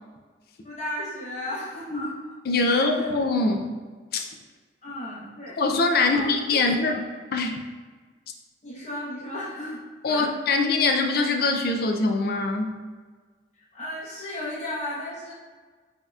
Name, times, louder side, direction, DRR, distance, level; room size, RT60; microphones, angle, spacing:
voice 1, 0.6-2.2 2.7-3.1 4.8-5.6 6.0-6.9 8.6-9.8 10.1-10.6 13.7-15.3, left 1 dB, 40° left, -6 dB, 0.9 m, -34 dB
voice 2, 2.5-3.8 4.1-4.3 5.6-7.0 7.3-7.6 10.0-12.8, left 3 dB, 55° left, 4 dB, 0.4 m, -23 dB
5.4 x 2.8 x 2.4 m, 1.4 s
head